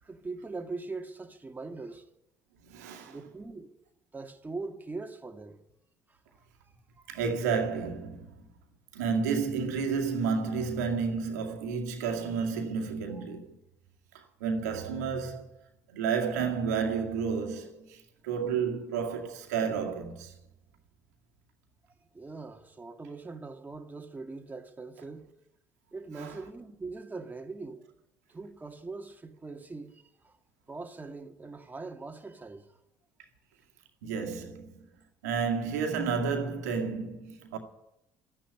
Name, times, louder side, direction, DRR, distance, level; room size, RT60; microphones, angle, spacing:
voice 1, 0.0-2.1 3.0-3.7 4.1-5.6 6.1-7.1 13.1-13.4 22.1-25.3 25.9-27.9 28.3-30.4 30.7-32.7 34.3-34.4, right 3 dB, 20° right, 2.1 m, -42 dB
voice 2, 2.7-3.2 7.1-8.3 8.9-13.5 14.4-15.5 15.9-20.3 26.2-26.3 34.0-34.9 35.2-37.6, right 5 dB, 80° right, 2.1 m, -31 dB
13.0 x 10.0 x 9.8 m
hypercardioid pair, 55°, 9 cm